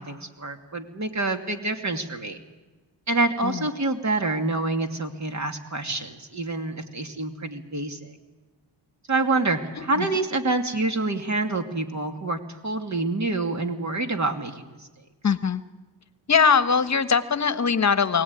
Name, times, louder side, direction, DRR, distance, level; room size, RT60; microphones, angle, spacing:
voice 1, 0.0-2.4 3.1-8.1 9.1-14.8, right 2 dB, 35° right, 5 dB, 2.6 m, -27 dB
voice 2, 15.2-15.6 16.3-18.2, left 6 dB, 35° left, 12 dB, 1.3 m, -21 dB
22.5 x 18.0 x 9.7 m, 1.2 s
cardioid pair, 85°, 45 cm